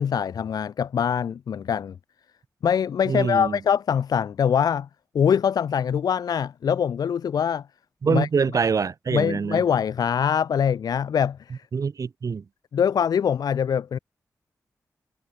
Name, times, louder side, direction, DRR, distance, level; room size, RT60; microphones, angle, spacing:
voice 1, 0.0-1.9 2.6-4.9 5.1-7.7 8.1-8.3 9.1-11.6 12.7-14.0, left 8 dB, 90° left, 0.7 m, -23 dB
voice 2, 3.1-3.6 8.0-9.6 11.7-12.4, right 5 dB, 60° right, 2.8 m, -24 dB
wide cardioid pair, 100°, 6 cm